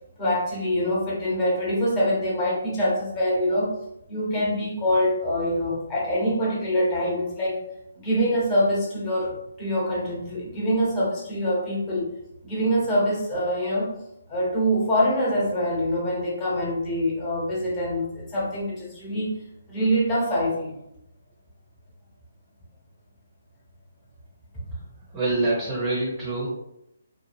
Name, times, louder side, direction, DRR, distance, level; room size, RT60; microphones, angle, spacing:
voice 1, 0.2-3.7 4.1-7.6 8.0-12.1 12.4-13.9 14.3-19.3 19.7-20.8, equal, 25° left, -7 dB, 1.2 m, -24 dB
voice 2, 25.1-26.5, right 2 dB, 20° right, -6 dB, 0.7 m, -25 dB
2.6 x 2.3 x 2.7 m, 0.82 s
hypercardioid pair, 150°, 0 cm